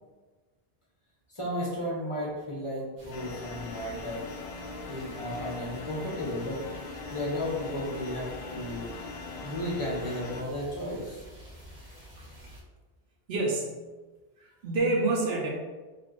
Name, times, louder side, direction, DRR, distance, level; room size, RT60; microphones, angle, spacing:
voice 1, 1.3-4.3 4.9-6.6 7.1-8.9 9.4-11.2, left 1 dB, 35° left, -4 dB, 0.8 m, -34 dB
sound 1, 3.0-12.6, equal, 50° right, 0.9 m, -48 dB
sound 2, 3.1-10.4, left 3 dB, 80° left, 0.8 m, -40 dB
voice 2, 13.3-13.8 14.4-15.5, right 2 dB, 75° right, -1 dB, 1.0 m, -27 dB
4.1 x 2.6 x 3.1 m, 1.3 s
omnidirectional pair, 1.0 m